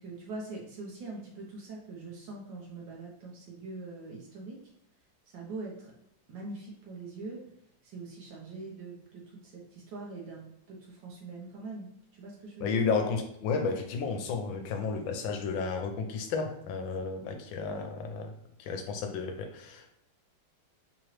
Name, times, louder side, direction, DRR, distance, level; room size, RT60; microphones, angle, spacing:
voice 1, 0.0-4.6 5.3-5.9 6.3-7.4 7.8-11.9 12.1-12.8 17.6-17.8, right 3 dB, 70° right, -3 dB, 1.4 m, -43 dB
voice 2, 12.6-18.3 18.6-19.9, left 5 dB, 80° left, 5 dB, 1.3 m, -32 dB
3.8 x 2.9 x 3.1 m, 0.76 s
omnidirectional pair, 2.2 m